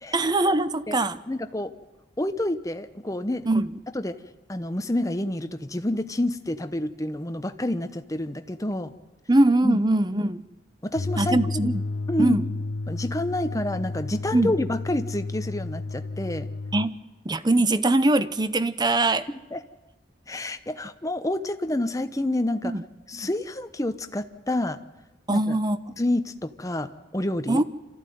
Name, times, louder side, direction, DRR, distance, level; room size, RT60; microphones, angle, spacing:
voice 1, 0.1-1.2 3.5-3.7 9.3-10.5 11.2-11.8 12.2-12.4 14.3-14.5 16.7-16.9 17.2-19.3 22.6-22.8 23.2-23.3 25.3-26.0 27.5-27.6, right 2 dB, 25° right, 14 dB, 0.7 m, -22 dB
voice 2, 1.3-1.7 2.2-3.5 3.9-4.2 4.5-8.9 9.6-9.8 10.8-11.7 12.1-12.4 12.9-16.5 19.3-19.6 20.3-22.7 23.1-24.8 25.3-25.6 26.0-27.6, left 1 dB, 20° left, 10 dB, 0.9 m, -28 dB
sound 1, 10.9-16.9, left 3 dB, 80° left, 0.7 m, -32 dB
26.5 x 14.5 x 9.3 m, 1.2 s
head